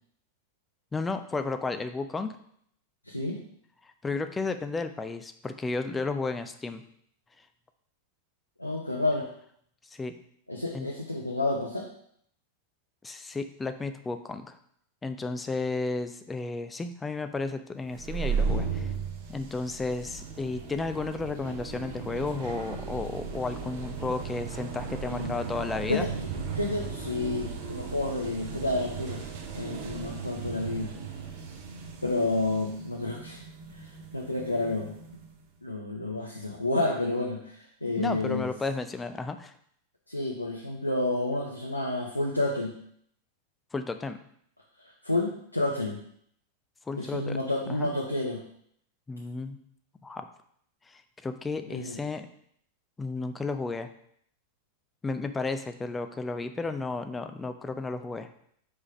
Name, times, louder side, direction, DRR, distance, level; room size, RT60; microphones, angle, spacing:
voice 1, 0.9-2.4 4.0-6.8 9.9-10.1 10.7-10.9 13.0-14.6 15.0-18.9 19.3-26.1 38.0-39.5 43.7-44.2 46.9-47.4 47.8-47.9 49.1-49.6 50.0-50.3 50.9-52.3 53.0-53.9 55.0-58.3, left 3 dB, 15° left, 8 dB, 0.6 m, -33 dB
voice 2, 3.1-3.4 8.6-9.3 10.5-11.9 25.0-25.6 25.9-26.1 26.5-29.2 29.5-30.9 32.0-33.4 34.1-35.0 35.6-38.5 40.1-42.7 45.0-46.0 47.0-48.4 51.7-52.0, left 2 dB, 85° left, -1 dB, 0.8 m, -30 dB
sound 1, 17.9-35.3, right 5 dB, 50° right, 1.1 m, -36 dB
5.0 x 4.9 x 5.5 m, 0.67 s
figure-of-eight pair, 90°, 0 cm